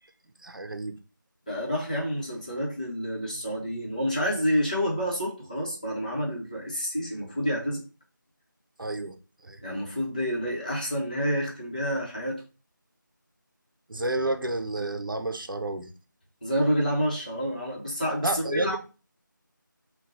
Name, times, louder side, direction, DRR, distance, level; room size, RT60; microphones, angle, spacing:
voice 1, 0.4-1.0 8.8-9.2 9.4-9.6 13.9-15.9 18.2-18.8, right 2 dB, 80° right, 0.6 m, -30 dB
voice 2, 1.5-7.8 9.6-12.4 16.4-18.8, equal, 20° left, 0.9 m, -28 dB
4.1 x 2.3 x 3.9 m
figure-of-eight pair, 175°, 11 cm